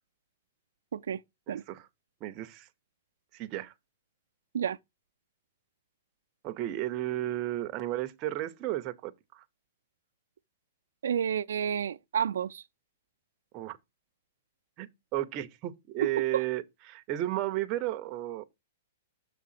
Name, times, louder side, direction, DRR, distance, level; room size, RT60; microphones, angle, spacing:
voice 1, 1.5-1.9 2.2-2.7 3.3-3.7 6.4-9.4 13.5-13.8 14.8-18.5, right 14 dB, 25° right, 0.6 m, -33 dB
voice 2, 11.0-12.6 16.0-16.1, right 8 dB, 90° right, 0.4 m, -30 dB
6.7 x 3.7 x 5.7 m
hypercardioid pair, 165°, 0 cm